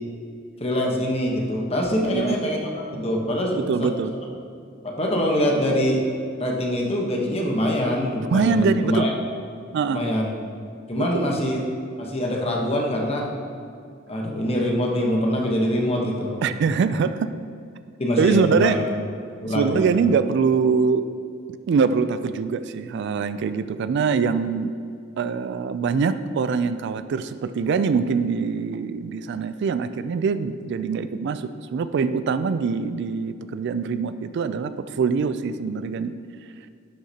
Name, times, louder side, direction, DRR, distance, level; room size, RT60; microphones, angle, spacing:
voice 1, 0.6-3.9 4.8-6.0 6.4-9.1 9.9-10.3 10.9-11.6 12.0-13.3 14.1-16.5 18.0-18.8 19.4-19.8, equal, 30° left, -1 dB, 1.0 m, -24 dB
voice 2, 1.9-2.4 3.6-4.1 8.3-9.1 9.7-10.0 11.0-11.4 16.4-17.3 18.2-18.8 19.5-21.1 21.7-24.7 25.2-36.1, right 5 dB, 60° right, 12 dB, 0.3 m, -23 dB
11.5 x 6.5 x 2.8 m, 2.3 s
head